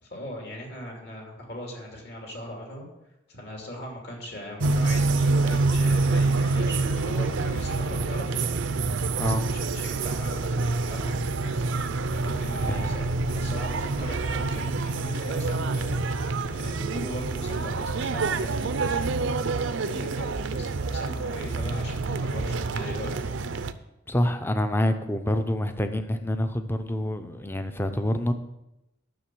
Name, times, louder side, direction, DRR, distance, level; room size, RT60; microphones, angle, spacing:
voice 1, 0.0-2.9 3.3-8.5 9.2-11.2 11.4-11.7 12.1-19.5 19.8-23.2, equal, 55° left, 0 dB, 2.7 m, -39 dB
sound 1, 4.6-23.7, right 3 dB, 75° right, 0.6 m, -27 dB
voice 2, 24.1-28.3, left 1 dB, 10° left, 8 dB, 0.6 m, -27 dB
10.5 x 6.7 x 6.2 m, 0.91 s
head